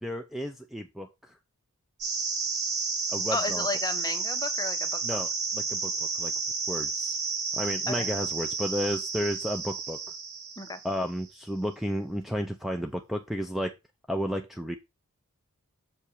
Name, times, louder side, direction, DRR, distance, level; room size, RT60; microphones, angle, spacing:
voice 1, 0.0-1.1 3.1-3.7 5.0-6.3 6.7-7.1 7.5-10.0 10.8-13.7 14.1-14.8, equal, ahead, 0.7 m, -32 dB
sound 1, 2.0-11.2, right 4 dB, 90° right, 5.5 m, -31 dB
voice 2, 3.3-5.0 7.9-8.1 10.6-10.8, left 3 dB, 15° left, 1.1 m, -33 dB
7.3 x 5.4 x 4.8 m
head